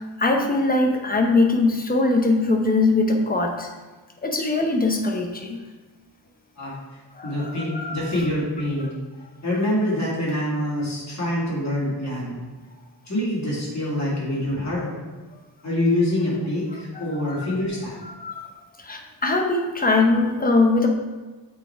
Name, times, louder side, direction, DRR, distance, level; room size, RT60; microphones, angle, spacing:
voice 1, 0.0-3.7 4.2-5.6 7.1-8.0 8.8-8.9 16.9-17.5 18.0-18.5 18.8-20.9, left 3 dB, 20° left, 1 dB, 0.7 m, -22 dB
voice 2, 7.2-8.9 9.4-12.4 13.1-15.0 15.6-17.9, left 1 dB, 40° left, -6 dB, 2.2 m, -25 dB
7.4 x 4.0 x 4.6 m, 1.2 s
wide cardioid pair, 175°, 45 cm